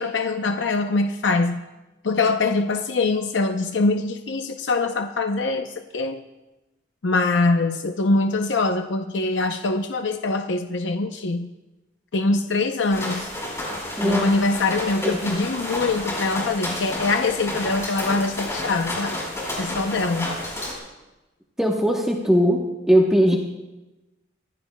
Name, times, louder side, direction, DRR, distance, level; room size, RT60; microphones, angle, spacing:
voice 1, 0.0-1.6 2.0-6.2 7.0-11.5 12.1-13.3 14.0-19.2 19.6-20.3, left 3 dB, 85° left, 6 dB, 0.7 m, -23 dB
sound 1, 12.9-20.7, left 1 dB, 15° left, 4.5 m, -30 dB
voice 2, 14.0-14.3 15.0-15.2 21.6-23.4, equal, 5° right, -1 dB, 1.0 m, -19 dB
26.5 x 16.0 x 2.3 m, 1.1 s
head